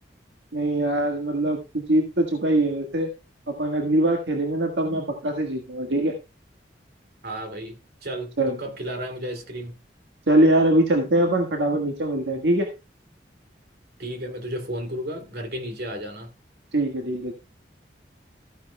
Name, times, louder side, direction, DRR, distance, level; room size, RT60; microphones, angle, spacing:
voice 1, 0.5-3.1 3.5-6.2 8.4-8.6 10.3-12.7 16.7-17.3, right 1 dB, 80° right, 1.6 m, -22 dB
voice 2, 7.2-9.7 14.0-16.3, equal, 60° right, 2.5 m, -33 dB
14.5 x 9.6 x 2.3 m
head